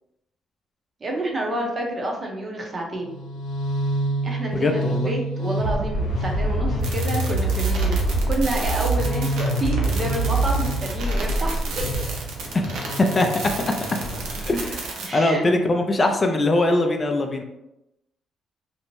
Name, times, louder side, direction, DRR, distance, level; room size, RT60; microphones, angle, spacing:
voice 1, 1.0-3.1 4.2-12.1 15.1-15.5, right 1 dB, 40° right, 1 dB, 0.6 m, -29 dB
sound 1, 3.0-14.9, right 2 dB, 80° left, 0.7 m, -25 dB
voice 2, 4.5-5.1 12.5-13.3 14.5-17.4, left 2 dB, 30° left, 4 dB, 0.3 m, -22 dB
sound 2, 6.8-15.1, right 4 dB, 85° right, 0.5 m, -34 dB
2.6 x 2.1 x 3.0 m, 0.89 s
cardioid pair, 90°, 0 cm